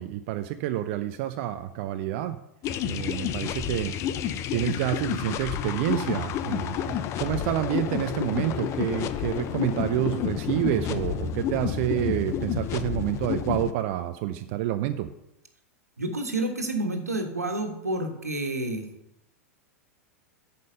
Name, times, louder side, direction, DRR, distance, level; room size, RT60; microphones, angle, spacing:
voice 1, 0.0-2.4 2.9-3.9 4.5-15.1, right 13 dB, 50° right, 9 dB, 0.6 m, -28 dB
sound 1, 2.6-13.7, left 9 dB, 35° left, 0.7 m, -30 dB
voice 2, 16.0-18.9, right 2 dB, 85° right, 4 dB, 1.6 m, -29 dB
9.3 x 5.4 x 6.6 m, 0.84 s
figure-of-eight pair, 95°, 8 cm